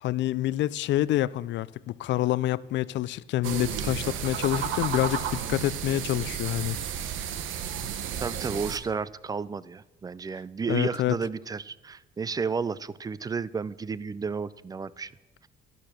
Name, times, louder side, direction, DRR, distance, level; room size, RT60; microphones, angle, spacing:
voice 1, 0.0-6.8 10.6-11.2, left 14 dB, 70° left, 0.4 m, -27 dB
sound 1, 3.4-8.8, right 8 dB, 85° right, 1.1 m, -32 dB
voice 2, 8.2-15.1, right 5 dB, 20° right, 0.3 m, -32 dB
12.0 x 11.5 x 6.0 m
cardioid pair, 130°, 20 cm